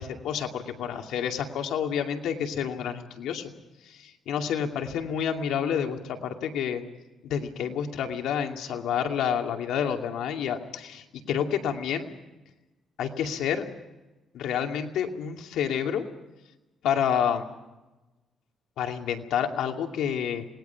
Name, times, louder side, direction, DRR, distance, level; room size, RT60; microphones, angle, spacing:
voice 1, 0.0-3.5 3.9-6.8 7.2-12.1 13.0-13.6 14.3-16.1 16.8-17.4 18.8-20.4, left 8 dB, 85° left, 4 dB, 2.4 m, -29 dB
27.5 x 19.5 x 5.8 m, 1.1 s
cardioid pair, 110°, 0 cm